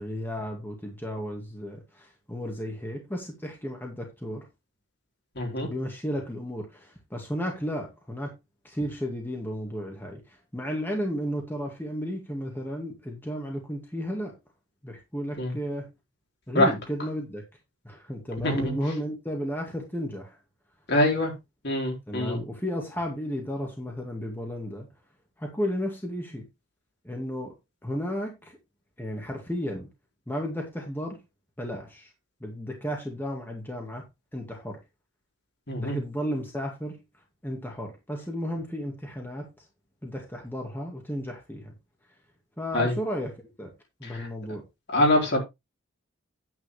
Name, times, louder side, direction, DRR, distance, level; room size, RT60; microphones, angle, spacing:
voice 1, 0.0-4.4 5.6-8.3 8.6-14.3 14.8-15.9 16.5-17.4 17.9-20.4 22.1-24.9 25.4-26.4 27.0-27.5 27.8-28.5 29.0-29.9 30.3-31.2 31.6-32.1 32.4-34.0 34.3-34.8 35.8-37.0 37.4-39.5 40.0-41.7 42.6-43.3 43.6-43.7 44.0-44.7, equal, 10° left, 2.0 m, -33 dB
voice 2, 5.4-5.7 15.4-15.5 16.5-16.7 18.4-18.7 20.9-21.3 21.6-22.4 35.7-36.0 42.7-42.9 44.0-44.3 44.9-45.4, left 1 dB, 55° left, 3.9 m, -24 dB
9.4 x 9.2 x 3.2 m
head